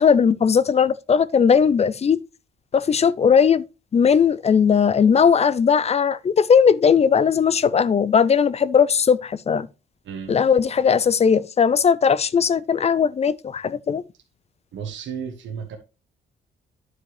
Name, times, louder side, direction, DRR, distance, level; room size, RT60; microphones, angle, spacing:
voice 1, 0.0-2.2 2.7-3.6 3.9-9.7 10.3-14.0, left 6 dB, 35° left, 0.4 m, -18 dB
voice 2, 14.7-15.8, right 7 dB, 70° right, 1.3 m, -33 dB
9.7 x 4.9 x 3.3 m
cardioid pair, 90°, 20 cm